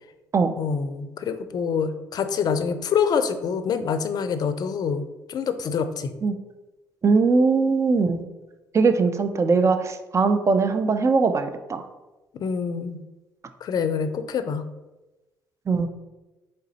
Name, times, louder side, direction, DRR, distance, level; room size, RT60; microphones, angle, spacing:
voice 1, 0.6-6.1 12.3-13.0 13.6-14.6, left 6 dB, 55° left, 10 dB, 0.4 m, -26 dB
voice 2, 7.0-8.2 8.7-11.8 15.7-15.9, right 4 dB, 35° right, 9 dB, 0.5 m, -20 dB
3.7 x 3.3 x 4.2 m, 1.1 s
hypercardioid pair, 55°, 8 cm